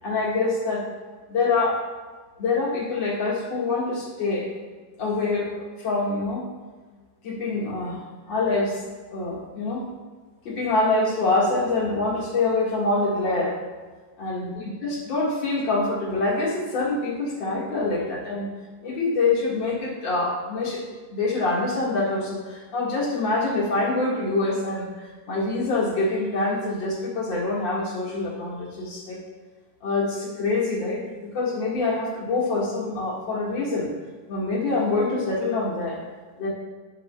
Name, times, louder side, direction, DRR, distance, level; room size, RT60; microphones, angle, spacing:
voice 1, 0.0-0.8 1.3-1.8 2.4-4.5 5.0-6.4 7.2-8.0 8.3-8.8 9.1-9.9 10.4-13.6 14.2-18.5 18.8-20.8 21.1-29.2 29.8-33.9 34.3-36.0 36.4-36.5, left 3 dB, 85° left, -5 dB, 2.5 m, -25 dB
11.5 x 7.0 x 2.2 m, 1.5 s
omnidirectional pair, 2.0 m